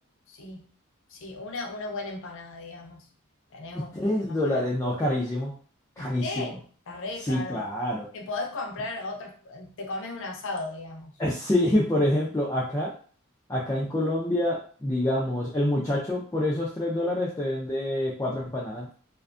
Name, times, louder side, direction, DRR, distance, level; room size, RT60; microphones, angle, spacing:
voice 1, 0.3-0.7 1.1-3.1 3.5-4.6 6.0-7.6 8.1-11.1, left 2 dB, 65° left, 2 dB, 0.6 m, -36 dB
voice 2, 3.9-5.5 6.0-6.5 7.3-8.1 11.2-12.9 13.5-18.9, left 1 dB, 15° left, -5 dB, 0.4 m, -26 dB
2.5 x 2.2 x 2.4 m, 0.42 s
head